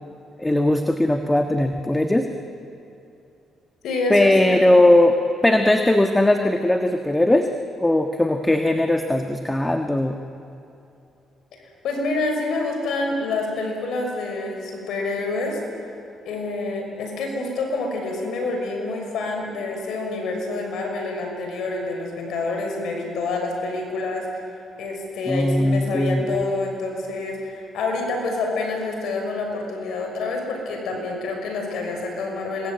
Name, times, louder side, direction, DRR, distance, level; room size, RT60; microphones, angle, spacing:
voice 1, 0.4-2.3 4.1-5.2 5.4-7.5 7.8-10.2 25.3-26.3, left 1 dB, 10° left, 6 dB, 1.5 m, -19 dB
voice 2, 3.8-4.9 11.6-15.6 16.2-24.3 24.8-32.7, left 3 dB, 75° left, 2 dB, 6.1 m, -27 dB
26.5 x 21.5 x 9.3 m, 2.7 s
cardioid pair, 90°, 0 cm